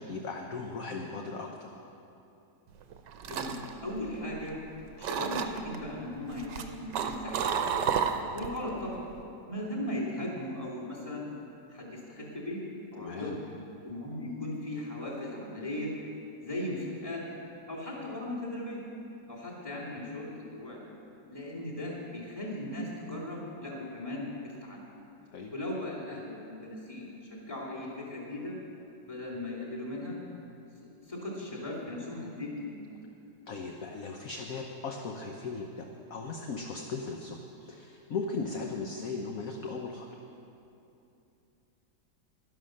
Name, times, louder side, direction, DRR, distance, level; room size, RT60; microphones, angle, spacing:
voice 1, 0.1-1.7 13.0-13.4 25.3-25.5 33.5-40.1, left 4 dB, 60° left, 2 dB, 1.1 m, -37 dB
sound 1, 2.8-4.7 5.0-5.8 6.3-8.6 8.9-9.2, right 7 dB, 75° right, 1.3 m, -31 dB
voice 2, 3.2-4.6 5.0-7.8 8.3-9.0 9.5-11.3 11.7-12.6 12.9-13.4 13.8-15.9 16.4-17.2 17.7-18.8 19.3-20.8 21.3-24.8 25.5-28.6 29.1-30.2 31.0-32.8, left 1 dB, 15° left, -5 dB, 2.6 m, -37 dB
11.5 x 11.0 x 6.4 m, 2.7 s
omnidirectional pair, 2.0 m